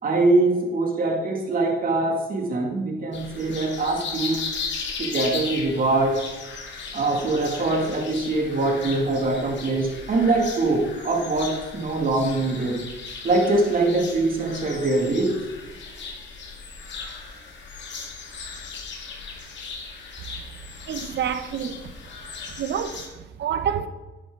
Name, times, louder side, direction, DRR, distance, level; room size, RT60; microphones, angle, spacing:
voice 1, 0.0-4.5 5.0-6.2 6.9-12.8 13.2-15.3, right 2 dB, 45° right, 2.4 m, -23 dB
sound 1, 3.1-23.1, left 5 dB, 65° left, 2.1 m, -37 dB
voice 2, 20.9-21.9 22.6-23.9, right 8 dB, 65° right, 0.9 m, -28 dB
11.0 x 8.9 x 3.8 m
cardioid pair, 90°, 20 cm